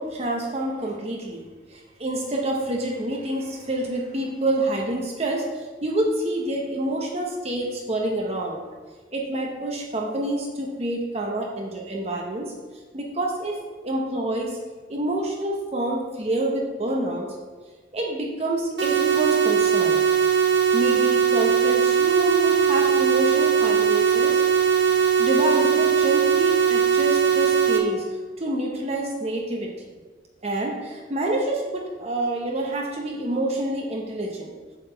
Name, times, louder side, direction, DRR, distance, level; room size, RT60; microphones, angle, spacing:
voice 1, 0.0-8.6 9.1-12.5 12.9-13.6 13.8-14.6 14.9-17.4 17.9-20.0 20.7-24.4 24.9-28.0 28.4-29.7 30.4-34.5, right 1 dB, 35° right, 0 dB, 0.8 m, -27 dB
sound 1, 18.8-27.8, right 6 dB, 65° right, 1.0 m, -20 dB
7.7 x 4.0 x 6.6 m, 1.4 s
head